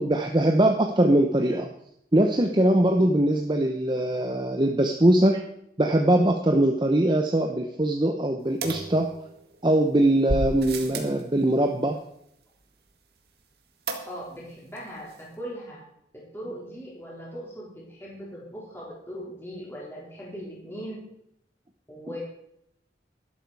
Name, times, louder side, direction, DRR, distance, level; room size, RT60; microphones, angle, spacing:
voice 1, 0.0-1.7 2.1-5.4 5.8-9.1 9.6-12.0, right 1 dB, 25° right, 3 dB, 0.9 m, -22 dB
sound 1, 8.6-9.6 10.3-11.2 13.9-14.5 14.8-14.9 15.1-15.2, right 2 dB, 65° right, 1.9 m, -32 dB
voice 2, 14.0-15.8 16.1-21.0 21.9-22.2, equal, 15° left, -5 dB, 3.7 m, -39 dB
12.5 x 11.5 x 4.8 m, 0.75 s
head